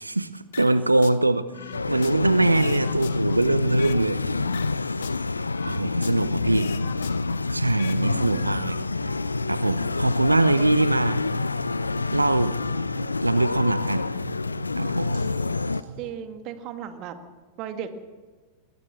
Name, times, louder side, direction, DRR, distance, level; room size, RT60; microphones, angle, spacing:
voice 1, 0.0-4.2 5.6-6.7 7.5-8.8 9.5-11.2 12.1-12.5 13.2-14.1 14.8-15.2, right 2 dB, 85° right, 15 dB, 0.7 m, -23 dB
sound 1, 0.5-1.2 1.5-4.1 4.4-6.3 6.5-8.0 8.3-8.5, left 9 dB, 65° left, 0.9 m, -40 dB
sound 2, 1.7-15.8, left 3 dB, 80° left, 0.5 m, -27 dB
sound 3, 7.5-16.1, right 2 dB, 65° right, 3.9 m, -43 dB
voice 2, 8.0-8.5 16.0-17.2 17.6-17.9, right 9 dB, 40° right, 8 dB, 2.0 m, -36 dB
20.5 x 19.5 x 6.5 m, 1.4 s
figure-of-eight pair, 90°, 0 cm